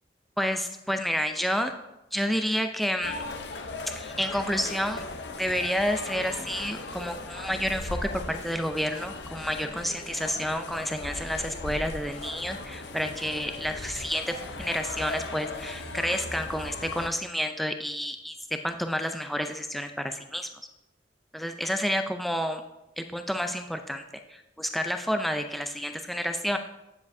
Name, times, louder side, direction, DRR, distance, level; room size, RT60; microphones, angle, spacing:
voice 1, 0.4-1.7 2.1-3.2 3.9-5.0 5.4-18.3 18.6-20.5 21.3-22.6 23.0-24.0 24.3-26.6, equal, ahead, 6 dB, 0.4 m, -30 dB
sound 1, 3.0-17.1, left 3 dB, 75° left, 0.7 m, -38 dB
9.5 x 7.2 x 2.6 m, 0.95 s
head